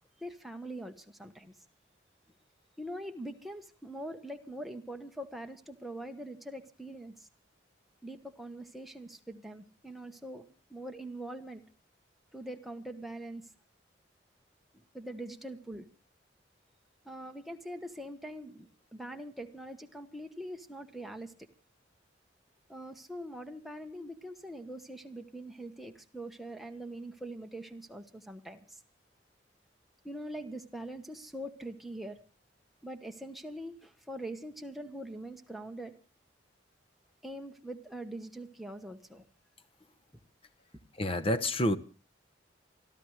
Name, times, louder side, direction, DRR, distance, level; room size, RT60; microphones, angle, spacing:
voice 1, 0.2-1.5 2.8-7.3 8.0-11.6 12.3-13.5 14.7-15.9 17.0-21.5 22.7-28.8 30.0-32.2 32.8-35.9 37.2-39.2, right 1 dB, ahead, 1.1 m, -43 dB
voice 2, 41.0-41.8, left 1 dB, 30° left, 0.8 m, -28 dB
28.0 x 13.0 x 3.2 m
head